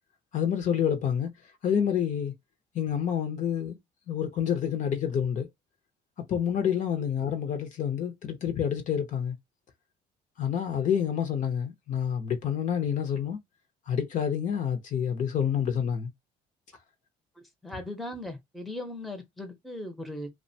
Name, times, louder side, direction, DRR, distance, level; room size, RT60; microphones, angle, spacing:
voice 1, 0.3-1.3 1.6-2.3 2.7-3.8 4.1-5.5 6.3-9.4 10.4-13.4 13.9-16.1, left 8 dB, 50° left, 0.6 m, -28 dB
voice 2, 17.6-20.3, left 1 dB, ahead, 0.6 m, -38 dB
2.4 x 2.1 x 2.6 m
cardioid pair, 110°, 17 cm